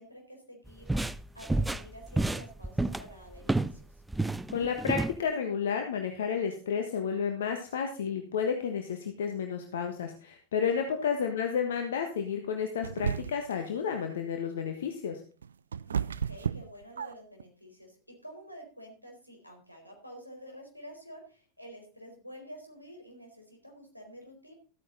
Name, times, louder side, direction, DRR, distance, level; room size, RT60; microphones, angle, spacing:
voice 1, 0.0-4.0 10.7-10.9 15.8-24.5, equal, 90° left, 1 dB, 4.4 m, -49 dB
sound 1, 0.7-3.8 4.1-5.2, right 2 dB, 5° right, 0.5 m, -30 dB
voice 2, 4.5-15.2, left 6 dB, 60° left, 5 dB, 1.4 m, -31 dB
sound 2, 12.8-13.6 15.1-17.4, right 7 dB, 70° right, 0.4 m, -33 dB
14.0 x 9.2 x 4.0 m, 0.38 s
figure-of-eight pair, 90°, 0 cm